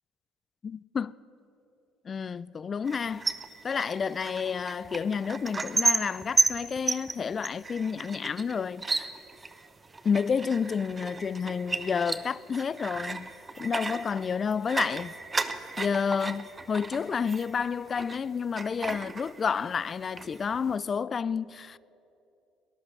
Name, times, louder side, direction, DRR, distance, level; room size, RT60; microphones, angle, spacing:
voice 1, 0.6-1.1 2.1-3.3 3.6-9.1 10.0-13.3 13.6-15.1 15.8-21.8, left 6 dB, 40° left, 0.3 m, -30 dB
sound 1, 2.8-18.2 18.6-19.8 20.0-20.7, right 3 dB, 25° right, 0.9 m, -33 dB
19.0 x 11.0 x 6.6 m
supercardioid pair, 75°, 0 cm